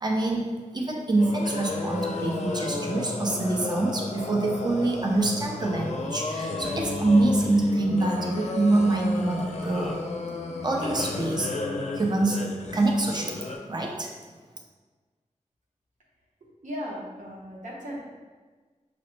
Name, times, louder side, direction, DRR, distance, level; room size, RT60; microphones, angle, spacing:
voice 1, 0.0-10.0 10.6-11.5 12.0-12.5 12.7-14.1, right 2 dB, 35° right, 0 dB, 0.5 m, -25 dB
sound 1, 1.2-13.6, left 3 dB, 60° left, 0.4 m, -33 dB
voice 2, 16.6-18.0, equal, 85° right, -3 dB, 0.8 m, -36 dB
4.9 x 2.0 x 3.1 m, 1.4 s
wide cardioid pair, 95°, 13 cm